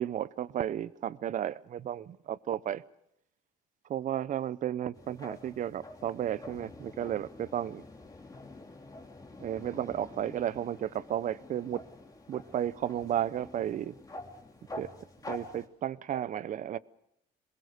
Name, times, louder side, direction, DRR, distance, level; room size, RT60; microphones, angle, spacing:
voice 1, 0.0-2.8 3.9-7.8 9.4-11.8 12.3-13.9 14.7-14.9 15.3-16.8, right 10 dB, 50° right, 18 dB, 0.7 m, -33 dB
sound 1, 4.9-15.7, left 2 dB, 20° left, 3.1 m, -47 dB
22.0 x 21.5 x 6.6 m, 0.79 s
cardioid pair, 110°, 17 cm